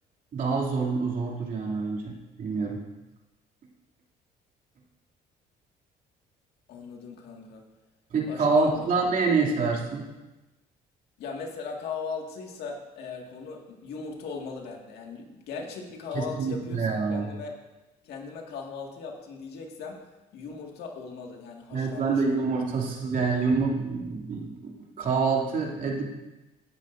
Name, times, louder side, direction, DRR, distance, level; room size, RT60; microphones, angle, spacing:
voice 1, 0.3-2.8 8.1-10.1 16.1-17.3 21.7-26.1, right 4 dB, 50° right, -1 dB, 2.7 m, -27 dB
voice 2, 6.7-7.7 8.2-8.9 11.2-17.6 18.0-22.4 22.9-23.0 23.4-23.5, left 5 dB, 75° left, 1 dB, 1.9 m, -38 dB
17.0 x 10.5 x 2.6 m, 1.1 s
cardioid pair, 110°, 17 cm